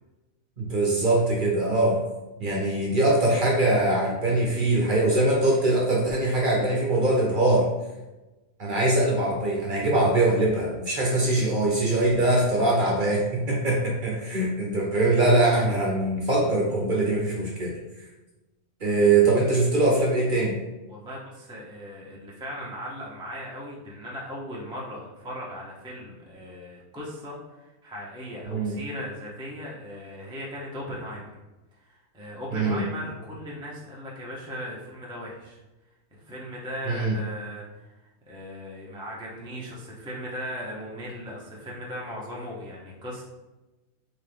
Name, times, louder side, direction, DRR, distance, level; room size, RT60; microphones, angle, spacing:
voice 1, 0.6-2.0 2.4-7.7 8.6-17.7 18.8-20.5 28.5-28.8 32.5-32.8 36.9-37.1, right 2 dB, 45° right, -2 dB, 0.7 m, -22 dB
voice 2, 20.9-31.3 31.8-35.6 36.1-37.9 38.3-43.2, equal, 10° right, -4 dB, 0.3 m, -38 dB
3.7 x 3.0 x 3.3 m, 1.1 s
omnidirectional pair, 1.5 m